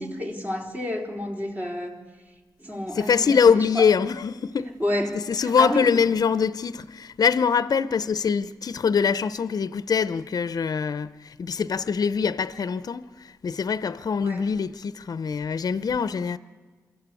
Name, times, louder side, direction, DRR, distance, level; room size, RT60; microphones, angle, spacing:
voice 1, 0.0-2.0 2.6-3.9 4.8-6.1 14.2-14.5, left 1 dB, 25° right, 3.8 m, -30 dB
voice 2, 3.0-4.7 5.3-16.4, left 6 dB, 60° left, 0.7 m, -23 dB
24.0 x 14.0 x 8.3 m
supercardioid pair, 45°, 7 cm